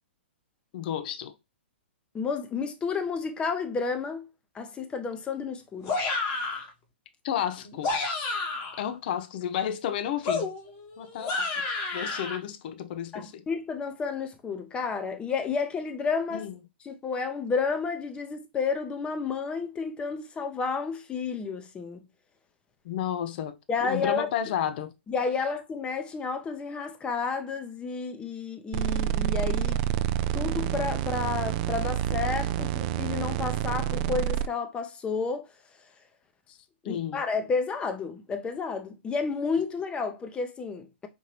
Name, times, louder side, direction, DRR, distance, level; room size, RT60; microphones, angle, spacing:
voice 1, 0.7-1.3 7.2-7.9 8.8-10.5 11.0-11.5 11.9-13.4 16.3-16.5 22.8-23.6 23.8-24.9 32.6-32.7 36.8-37.2, left 9 dB, 50° left, 0.6 m, -32 dB
voice 2, 2.1-6.0 13.1-16.5 16.8-22.0 23.7-24.3 25.1-29.8 30.3-36.1 36.8-41.1, left 5 dB, 15° left, 0.7 m, -31 dB
sound 1, 5.8-6.7 7.6-8.8 10.2-12.4, left 3 dB, 35° left, 1.2 m, -30 dB
sound 2, 28.7-34.5, right 11 dB, 40° right, 0.4 m, -28 dB
5.2 x 2.8 x 3.1 m
hypercardioid pair, 130°, 6 cm